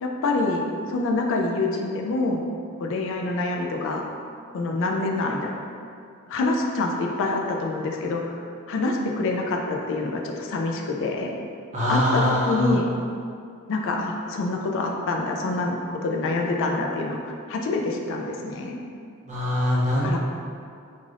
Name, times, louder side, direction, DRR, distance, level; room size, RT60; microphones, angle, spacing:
voice 1, 0.0-2.4 2.8-4.0 4.5-5.5 6.3-8.4 8.7-11.3 11.9-12.9 13.7-18.8 20.0-20.2, left 2 dB, 60° left, 1 dB, 0.3 m, -26 dB
voice 2, 11.7-12.8 19.3-20.2, left 1 dB, 35° right, -5 dB, 0.5 m, -23 dB
2.5 x 2.4 x 3.2 m, 2.4 s
head